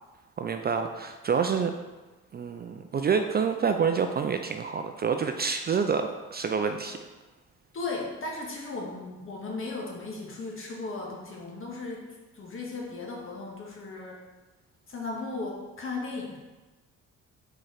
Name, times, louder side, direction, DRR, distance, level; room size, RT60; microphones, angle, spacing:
voice 1, 0.4-1.7 2.3-7.0, right 6 dB, 35° right, 6 dB, 0.4 m, -27 dB
voice 2, 7.7-12.0 12.3-14.2 14.9-16.4, left 3 dB, 45° left, -2 dB, 1.6 m, -36 dB
4.6 x 4.4 x 4.7 m, 1.2 s
cardioid pair, 90°, 30 cm